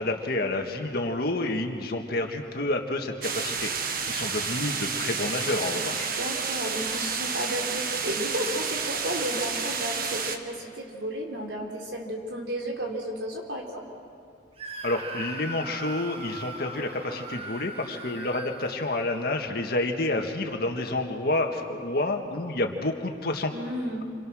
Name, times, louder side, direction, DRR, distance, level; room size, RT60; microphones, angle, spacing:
voice 1, 0.0-3.7 4.1-6.1 14.8-23.5, left 2 dB, 60° left, 3 dB, 1.8 m, -29 dB
sound 1, 3.2-10.4, right 5 dB, 55° right, 1.5 m, -30 dB
voice 2, 6.2-13.8 23.5-24.0, equal, 80° right, 0 dB, 4.4 m, -33 dB
Screaming, 14.6-19.4, right 3 dB, 35° right, 1.5 m, -40 dB
29.0 x 26.5 x 6.4 m, 2.3 s
head